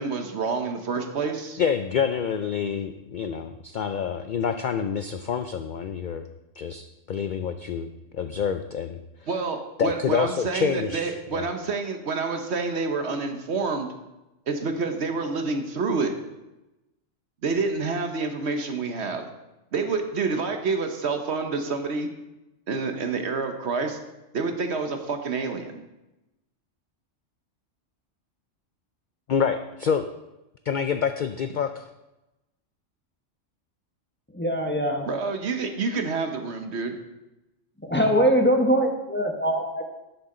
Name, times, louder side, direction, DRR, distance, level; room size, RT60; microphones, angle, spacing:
voice 1, 0.0-1.6 9.3-13.9 14.5-16.1 17.4-19.3 19.7-22.1 22.7-24.0 24.3-25.8 35.1-37.0, right 4 dB, 60° right, 5 dB, 1.2 m, -28 dB
voice 2, 1.6-6.2 6.6-7.9 8.1-9.0 9.8-11.5 29.3-30.0 30.7-31.8, left 7 dB, 65° left, 8 dB, 0.4 m, -27 dB
voice 3, 34.3-35.1 37.8-39.8, equal, 10° left, 2 dB, 0.9 m, -22 dB
11.0 x 6.8 x 3.8 m, 0.98 s
omnidirectional pair, 1.3 m